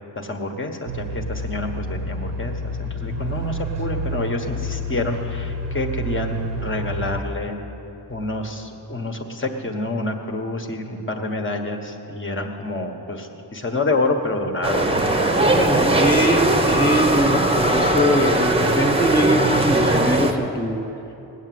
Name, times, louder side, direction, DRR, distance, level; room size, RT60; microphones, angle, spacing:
voice 1, 0.1-7.6 8.1-14.9 15.2-15.5, left 2 dB, 30° left, 3 dB, 1.4 m, -27 dB
sound 1, 0.9-7.2, equal, 85° right, 1.3 m, -29 dB
sound 2, 14.6-20.3, right 1 dB, 15° right, 1.0 m, -19 dB
voice 2, 15.4-20.8, equal, 10° left, -2 dB, 0.9 m, -22 dB
19.0 x 7.4 x 9.4 m, 2.9 s
wide cardioid pair, 135°, 41 cm